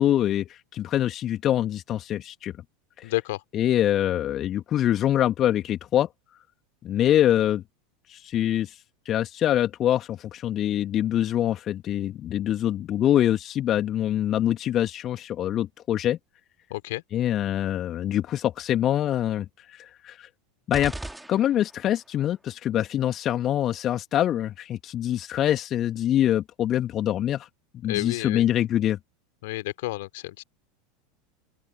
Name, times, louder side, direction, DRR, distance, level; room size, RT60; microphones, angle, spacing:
voice 1, 0.0-2.5 3.0-3.1 3.5-6.1 6.8-7.6 8.1-8.8 9.1-16.2 17.1-20.3 20.7-20.9 21.3-27.5 27.7-29.0, left 11 dB, 35° left, 2.6 m, -24 dB
voice 2, 3.0-3.4 16.7-17.0 27.9-28.4 29.4-30.4, left 19 dB, 60° left, 3.2 m, -30 dB
sound 1, 20.7-22.0, right 1 dB, 5° right, 3.2 m, -38 dB
open air
figure-of-eight pair, 80°, 0 cm